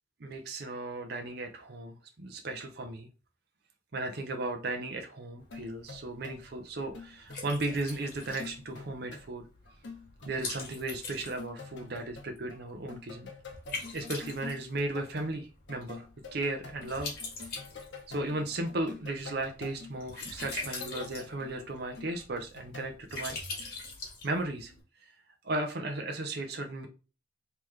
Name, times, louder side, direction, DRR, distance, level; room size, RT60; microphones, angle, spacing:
voice 1, 0.2-3.1 3.9-9.4 10.3-13.3 13.9-17.1 18.1-23.4 23.7-23.8 24.2-24.7 25.4-26.9, right 2 dB, 60° right, 4 dB, 0.7 m, -35 dB
Liquid, 5.4-24.8, left 3 dB, 55° left, 1.6 m, -44 dB
sound 1, 5.5-6.5 6.8-9.3 9.7-10.8 11.2-12.6 12.9-23.4, left 4 dB, 70° left, 0.7 m, -47 dB
3.2 x 2.9 x 3.6 m, 0.33 s
head